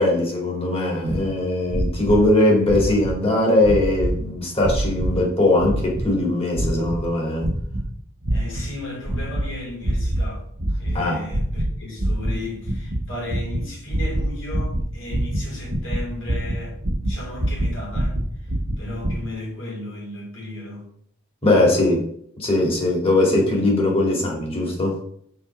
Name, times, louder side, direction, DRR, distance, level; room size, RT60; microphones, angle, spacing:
voice 1, 0.0-7.5 10.9-11.2 21.4-22.1 22.4-25.0, left 1 dB, 30° left, 2.4 m, -20 dB
sound 1, 1.1-1.2 1.7-2.3 2.6-3.2 3.6-4.2 4.6-5.2 5.6-6.2 6.5-7.0 7.4-7.9 8.2-8.7 9.0-9.5 9.8-10.3 10.6-11.0 11.3-11.7 12.0-19.1, right 1 dB, 75° right, 1.3 m, -25 dB
voice 2, 8.3-10.4 10.8-20.9 21.5-21.8 23.4-23.5, left 1 dB, 60° left, 3.4 m, -35 dB
5.8 x 4.4 x 5.9 m
head